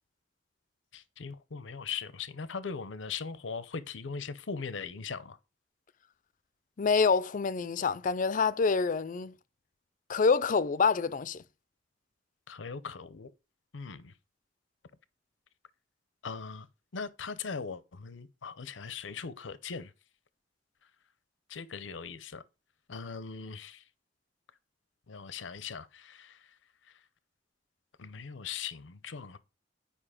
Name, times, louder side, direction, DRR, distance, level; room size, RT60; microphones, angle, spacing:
voice 1, 0.9-5.4 12.5-13.3 13.7-14.1 16.2-16.7 16.9-19.9 21.5-22.4 22.9-23.8 25.1-26.5 28.0-29.4, left 5 dB, 85° left, 0.7 m, -40 dB
voice 2, 6.8-9.3 10.1-11.4, left 5 dB, 45° left, 0.4 m, -26 dB
9.9 x 5.2 x 5.0 m
head